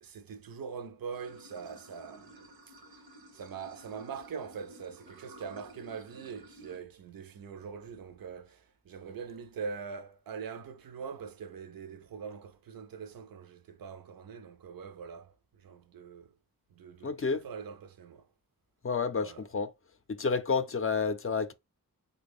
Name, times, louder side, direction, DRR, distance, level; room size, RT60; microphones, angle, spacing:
voice 1, 0.0-2.5 3.3-15.3 15.6-16.3 16.7-18.2 19.2-19.4, right 6 dB, 70° right, 0.5 m, -43 dB
Water / Sink (filling or washing), 1.1-6.8, right 1 dB, 90° right, 0.9 m, -54 dB
voice 2, 17.0-17.4 18.8-19.7 20.1-21.5, left 5 dB, 40° left, 0.4 m, -30 dB
3.3 x 2.2 x 3.5 m
wide cardioid pair, 80°, 36 cm